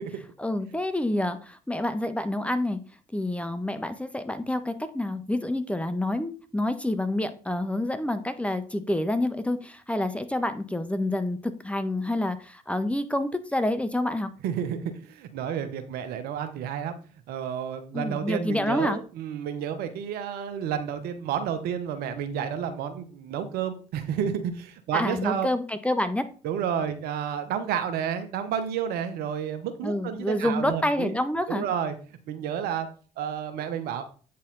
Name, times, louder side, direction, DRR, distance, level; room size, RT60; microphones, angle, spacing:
voice 1, 0.4-2.8 3.1-14.3 17.9-19.0 24.9-26.3 29.8-31.6, left 1 dB, 5° left, 10 dB, 1.0 m, -28 dB
voice 2, 14.4-16.9 17.3-25.5 26.4-31.1 31.5-31.9 32.2-32.9 33.2-34.1, right 8 dB, 70° right, 8 dB, 0.9 m, -30 dB
8.4 x 4.2 x 3.9 m, 0.39 s
hypercardioid pair, 50°, 16 cm